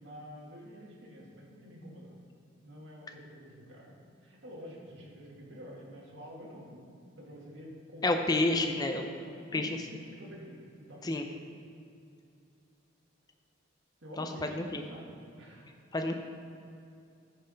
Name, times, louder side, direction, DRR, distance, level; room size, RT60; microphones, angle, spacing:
voice 1, 0.0-2.1 2.6-6.9 7.1-8.6 8.9-11.4 14.0-15.7, equal, 60° right, -3 dB, 1.8 m, -49 dB
voice 2, 8.0-9.1 9.5-9.7 11.0-11.3 14.2-14.8 15.9-16.2, left 2 dB, 20° left, 5 dB, 0.4 m, -29 dB
10.5 x 4.6 x 5.1 m, 2.5 s
head